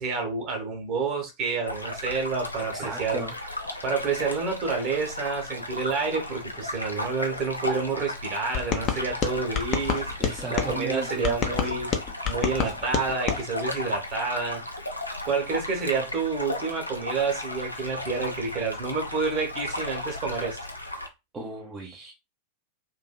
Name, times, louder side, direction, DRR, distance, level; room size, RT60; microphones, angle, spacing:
voice 1, 0.0-3.2 3.8-10.1 10.5-14.6 15.2-20.6, right 4 dB, 40° right, 1.1 m, -29 dB
sound 1, 1.7-21.1, left 1 dB, 85° left, 0.4 m, -35 dB
voice 2, 2.7-3.3 3.6-3.8 10.2-11.9 16.0-16.1 21.3-22.1, right 3 dB, 20° right, 0.6 m, -37 dB
sound 2, 8.5-10.7 11.2-13.4, left 7 dB, 35° left, 0.6 m, -28 dB
2.7 x 2.6 x 2.2 m
figure-of-eight pair, 90°, 0 cm